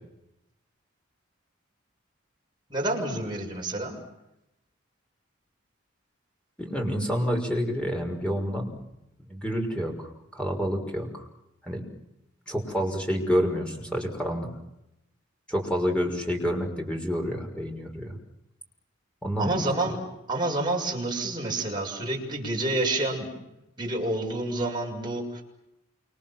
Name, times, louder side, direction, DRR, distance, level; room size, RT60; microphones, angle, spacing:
voice 1, 2.7-4.0 19.4-20.0 20.3-23.3 23.8-25.4, right 2 dB, 20° right, -1 dB, 7.0 m, -28 dB
voice 2, 6.6-8.7 9.2-11.2 11.6-11.8 12.5-14.5 15.5-18.2 19.2-19.6, equal, 5° left, 2 dB, 6.0 m, -28 dB
28.5 x 27.0 x 7.7 m, 0.86 s
head